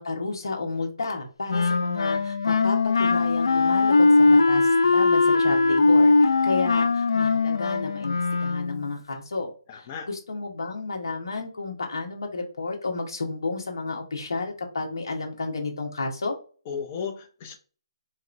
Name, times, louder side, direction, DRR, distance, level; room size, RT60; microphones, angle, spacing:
voice 1, 0.0-16.3, left 3 dB, 65° left, 1.1 m, -32 dB
Wind instrument woodwind instrument, 1.5-8.9, left 3 dB, 85° left, 0.5 m, -20 dB
voice 2, 9.7-10.1 16.7-17.6, left 6 dB, 15° left, 0.4 m, -34 dB
3.0 x 2.9 x 2.5 m
hypercardioid pair, 180°, 3 cm